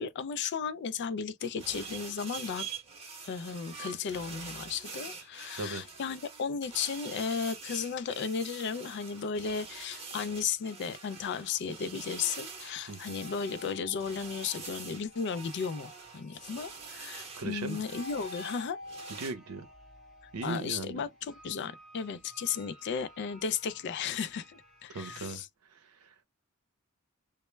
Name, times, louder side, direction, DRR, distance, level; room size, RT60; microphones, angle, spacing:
voice 1, 0.0-2.7 3.2-18.8 20.4-25.5, left 6 dB, 50° left, 0.3 m, -35 dB
sound 1, 1.4-19.3, right 5 dB, 25° right, 0.8 m, -45 dB
sound 2, 12.5-25.2, left 1 dB, ahead, 0.9 m, -51 dB
voice 2, 12.9-13.2 17.4-17.8 19.1-19.7 20.3-21.0 24.9-25.4 25.7-26.1, right 3 dB, 80° right, 0.6 m, -38 dB
2.1 x 2.0 x 3.0 m
head